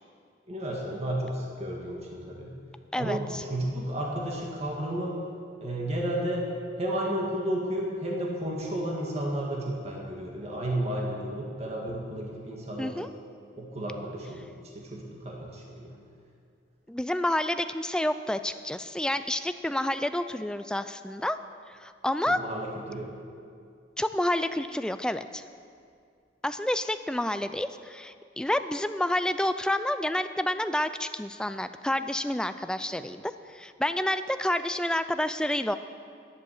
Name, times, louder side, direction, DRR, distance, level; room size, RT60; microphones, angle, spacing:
voice 1, 0.5-2.5 3.0-3.2 3.5-5.2 5.6-6.5 6.8-12.9 13.6-14.5 14.7-15.9 22.3-23.1, right 1 dB, 35° right, -2 dB, 1.7 m, -32 dB
voice 2, 2.9-3.4 12.8-13.1 16.9-21.4 21.8-22.4 24.0-25.4 26.4-33.2 33.5-35.8, left 1 dB, 5° left, 11 dB, 0.3 m, -29 dB
11.0 x 10.0 x 6.6 m, 2.3 s
head